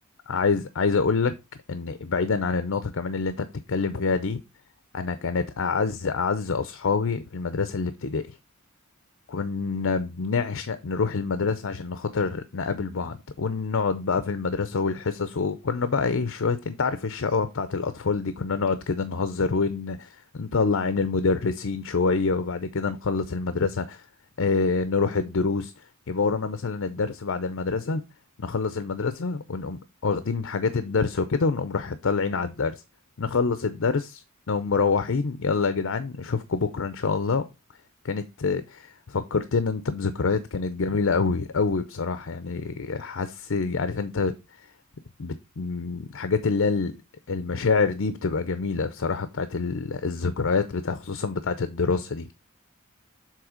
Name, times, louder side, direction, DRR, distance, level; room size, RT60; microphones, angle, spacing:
voice 1, 0.3-1.3 1.7-4.4 4.9-8.2 9.3-20.1 20.3-24.0 24.4-25.7 26.1-28.0 28.4-32.8 33.2-37.4 38.0-44.3 45.2-47.0 47.3-52.3, left 4 dB, 65° left, 0.6 m, -26 dB
7.5 x 3.8 x 4.9 m
head